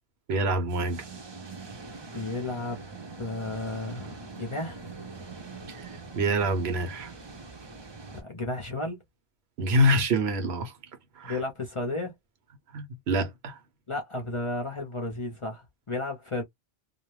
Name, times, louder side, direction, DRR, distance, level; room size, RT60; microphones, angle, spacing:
voice 1, 0.3-1.1 5.7-7.1 9.6-10.7 11.2-11.4 12.7-13.6, equal, 75° right, 1.0 m, -26 dB
sound 1, 0.7-8.2, right 3 dB, 35° right, 0.5 m, -43 dB
voice 2, 2.1-2.8 3.2-4.8 8.2-9.0 11.2-12.1 13.9-16.4, left 2 dB, 35° left, 0.5 m, -33 dB
2.4 x 2.0 x 3.1 m
omnidirectional pair, 1.1 m